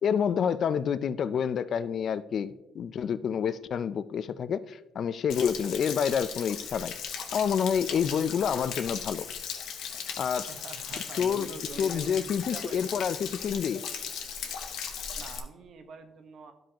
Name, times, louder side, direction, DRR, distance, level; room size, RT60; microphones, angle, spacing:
voice 1, 0.0-6.9 7.3-9.2 10.2-10.5 11.2-11.5 11.8-13.8, left 7 dB, 60° left, 0.4 m, -28 dB
Stream / Splash splatter / Trickle dribble, 5.3-15.4, left 7 dB, 80° left, 0.8 m, -37 dB
voice 2, 10.5-13.0 15.2-16.5, right 5 dB, 65° right, 1.0 m, -45 dB
12.0 x 5.2 x 2.9 m
cardioid pair, 90°, 0 cm